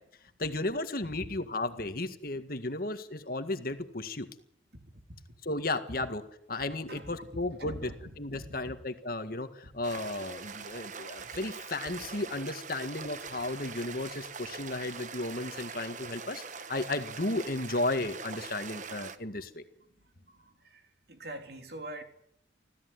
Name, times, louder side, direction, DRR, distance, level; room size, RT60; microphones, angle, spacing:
voice 1, 0.4-4.3 5.4-16.4 16.7-19.6, left 2 dB, 50° left, 1.9 m, -34 dB
voice 2, 7.6-7.9 8.3-8.5 20.7-20.8 21.1-22.0, right 1 dB, 60° right, 3.5 m, -42 dB
sound 1, 9.8-19.2, right 5 dB, 45° right, 1.2 m, -43 dB
26.0 x 16.0 x 9.6 m
head